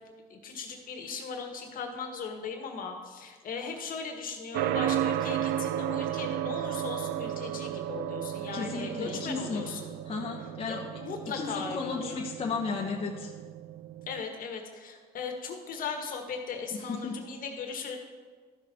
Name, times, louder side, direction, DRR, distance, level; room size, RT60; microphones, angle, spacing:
voice 1, 0.3-9.9 10.7-12.2 14.1-18.0, left 5 dB, 55° left, 4 dB, 1.5 m, -38 dB
sound 1, 4.5-14.2, right 11 dB, 75° right, 0.4 m, -34 dB
voice 2, 8.5-9.7 10.1-10.8 11.3-13.3 16.9-17.2, left 4 dB, 35° left, -2 dB, 1.1 m, -34 dB
13.5 x 6.0 x 4.3 m, 1.5 s
cardioid pair, 110°, 17 cm